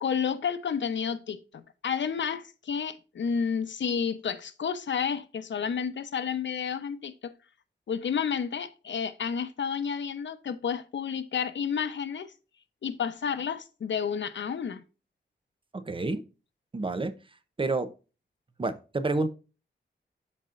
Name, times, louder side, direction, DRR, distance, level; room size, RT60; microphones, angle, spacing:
voice 1, 0.0-7.3 7.9-12.3 12.8-14.8, left 7 dB, 85° left, 0.8 m, -31 dB
voice 2, 15.7-16.2 16.7-17.1 17.6-17.9 18.6-19.3, right 3 dB, 30° right, 0.7 m, -29 dB
12.5 x 4.2 x 2.5 m
wide cardioid pair, 175°, 18 cm